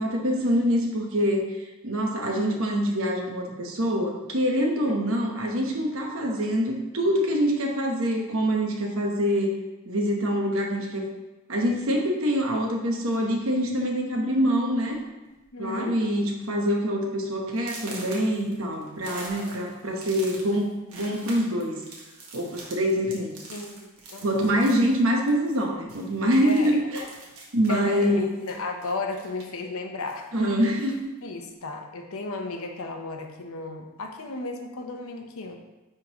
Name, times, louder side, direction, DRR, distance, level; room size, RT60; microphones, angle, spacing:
voice 1, 0.0-1.4 1.8-9.5 9.9-11.1 11.5-15.0 15.6-21.8 22.3-23.3 24.2-27.0 27.5-28.3 30.3-31.1, equal, 70° right, 1 dB, 1.0 m, -25 dB
voice 2, 4.9-5.2 15.5-16.0 23.5-24.5 26.4-26.8 27.7-30.3 31.2-35.6, left 3 dB, 75° left, 3 dB, 0.8 m, -34 dB
sound 1, 13.0-13.4 14.2-14.3 14.7-14.9 15.2-15.7 16.1-16.2 16.7-16.8 17.6-25.6 25.9-29.6 30.0-31.0, right 2 dB, 85° right, 1.4 m, -44 dB
9.8 x 3.8 x 3.0 m, 1.0 s
head